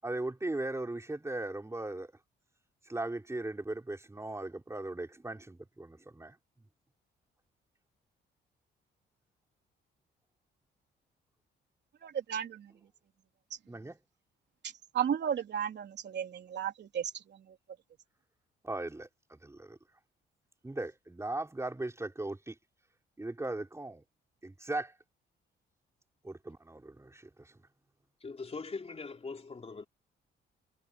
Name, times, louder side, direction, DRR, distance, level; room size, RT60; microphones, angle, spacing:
voice 1, 0.0-2.1 2.9-6.4 13.7-14.0 18.6-19.8 20.6-22.5 23.2-24.0 24.4-24.9 26.2-27.6, right 2 dB, 15° right, 4.7 m, -38 dB
voice 2, 12.0-12.7 14.9-17.5, right 9 dB, 60° right, 3.6 m, -34 dB
voice 3, 28.2-29.9, left 4 dB, 30° left, 3.5 m, -41 dB
cardioid pair, 90°, 20 cm